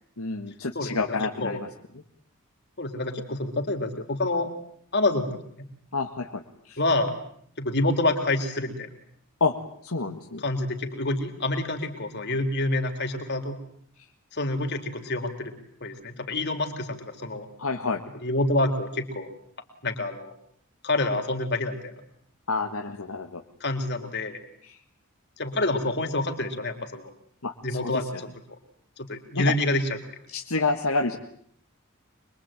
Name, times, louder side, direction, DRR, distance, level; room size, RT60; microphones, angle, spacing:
voice 1, 0.2-1.7 5.9-6.8 9.4-9.5 9.8-10.4 17.6-18.0 22.5-23.4 24.6-24.8 27.4-28.2 29.3-29.5 30.3-31.2, left 3 dB, 90° left, 3 dB, 1.9 m, -29 dB
voice 2, 0.8-1.6 2.8-4.5 4.9-5.3 6.8-7.1 7.6-8.9 10.4-13.6 14.3-15.5 15.8-17.5 18.2-19.3 19.8-20.3 20.8-21.9 23.6-24.4 25.4-27.1 27.6-28.1 29.0-29.8, left 2 dB, 55° left, 5 dB, 4.0 m, -27 dB
25.5 x 23.0 x 9.1 m, 0.65 s
head